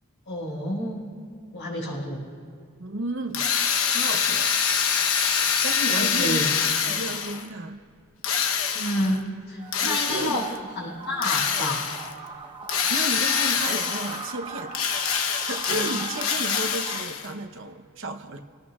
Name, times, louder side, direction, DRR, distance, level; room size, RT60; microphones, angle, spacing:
voice 1, 0.3-1.0 1.5-2.2 5.9-6.5 8.7-10.5 10.7-12.0 15.7-16.0, left 1 dB, 55° left, -5 dB, 5.0 m, -29 dB
voice 2, 2.8-3.5 3.9-4.5 5.6-6.4 6.9-7.8 9.8-10.4 12.4-12.5 12.9-14.8 15.1-18.4, right 2 dB, 65° right, 6 dB, 0.9 m, -33 dB
Drill, 3.3-7.5 8.2-9.2 9.7-10.6 11.2-12.1 12.7-14.3 14.7-17.3, left 7 dB, 80° left, 1.0 m, -25 dB
sound 1, 9.6-17.0, right 4 dB, 25° right, 1.0 m, -39 dB
27.0 x 18.0 x 2.4 m, 2.2 s
head